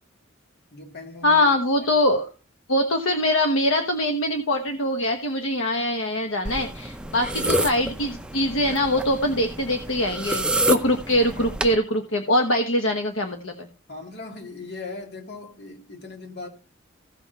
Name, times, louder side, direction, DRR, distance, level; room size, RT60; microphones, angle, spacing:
voice 1, 0.7-1.5 1.8-1.9 13.9-16.5, left 3 dB, 55° left, 2.7 m, -38 dB
voice 2, 1.2-2.3 2.7-13.7, left 1 dB, 70° left, 1.2 m, -23 dB
sound 1, 6.4-11.7, right 1 dB, 5° right, 0.6 m, -28 dB
15.5 x 6.2 x 4.2 m
head